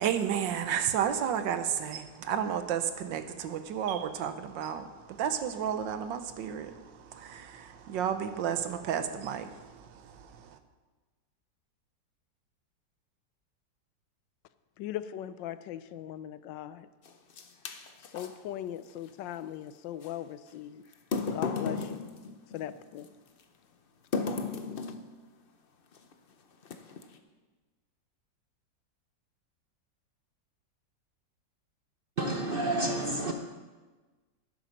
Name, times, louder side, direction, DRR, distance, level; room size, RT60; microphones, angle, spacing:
voice 1, 0.0-2.0 2.3-3.2 3.5-4.8 5.2-6.6 7.9-9.4, right 9 dB, 80° right, 1.5 m, -30 dB
voice 2, 14.8-16.9 18.0-20.8 21.3-22.1 22.5-23.1, left 11 dB, 85° left, 1.3 m, -39 dB
sound 1, 17.1-18.3 20.0-20.1 20.9-23.1 24.1-25.1 25.9-26.1 26.6-27.2, left 4 dB, 50° left, 0.6 m, -34 dB
voice 3, 32.2-33.3, right 2 dB, 50° right, 0.6 m, -29 dB
12.0 x 10.5 x 5.3 m
omnidirectional pair, 2.0 m